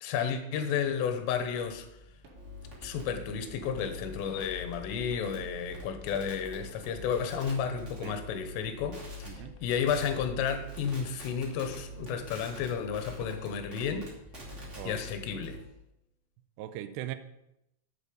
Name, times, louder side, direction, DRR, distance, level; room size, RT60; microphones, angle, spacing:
voice 1, 0.0-1.9 2.8-14.1 14.9-15.6, left 7 dB, 85° left, 8 dB, 3.6 m, -32 dB
sound 1, 0.8-15.1, left 1 dB, 40° left, 0.8 m, -52 dB
sound 2, 0.8-1.0 1.6-1.8 2.2-2.6 3.1-3.2 3.6-3.8 4.4-4.6 5.1-5.5 6.1-6.6 7.2-7.9 8.7-8.8 9.3-10.0 10.5-11.5 12.1-12.5 13.2-13.6 14.4-14.8 15.3-15.8, right 4 dB, 60° right, 3.8 m, -56 dB
sound 3, 2.3-8.6 8.9-9.3 9.7-10.2 10.5-15.6, equal, 20° right, 2.4 m, -45 dB
voice 2, 9.3-9.6 14.8-15.0 16.6-17.2, right 12 dB, 80° right, 10 dB, 2.5 m, -39 dB
11.5 x 8.2 x 5.2 m, 0.83 s
omnidirectional pair, 5.7 m